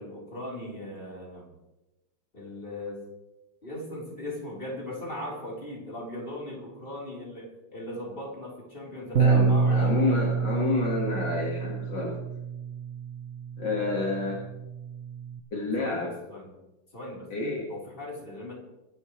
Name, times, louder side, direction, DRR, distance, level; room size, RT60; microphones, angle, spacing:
voice 1, 0.0-1.5 2.3-3.0 3.6-10.1 15.8-16.5 16.9-17.3 17.7-18.5, left 1 dB, 25° left, -4 dB, 4.3 m, -38 dB
voice 2, 9.2-12.2 13.6-14.4 15.5-16.1 17.3-17.7, left 3 dB, 60° left, -3 dB, 2.6 m, -29 dB
Bass guitar, 9.2-15.4, right 5 dB, 55° right, 0.8 m, -27 dB
24.0 x 11.5 x 3.3 m, 1.0 s
omnidirectional pair, 2.2 m